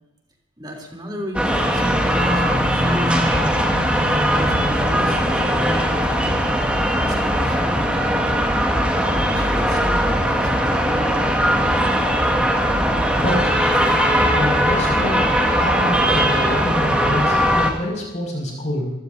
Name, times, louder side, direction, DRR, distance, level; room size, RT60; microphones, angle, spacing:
voice 1, 0.6-3.3 4.3-6.5 6.9-8.5 9.3-11.3, equal, 20° right, 0 dB, 3.2 m, -35 dB
sound 1, 1.3-17.7, equal, 5° right, 1.9 m, -19 dB
voice 2, 13.2-13.6 14.3-18.9, left 1 dB, 40° left, -1 dB, 6.0 m, -26 dB
26.5 x 15.5 x 2.7 m, 1.0 s
head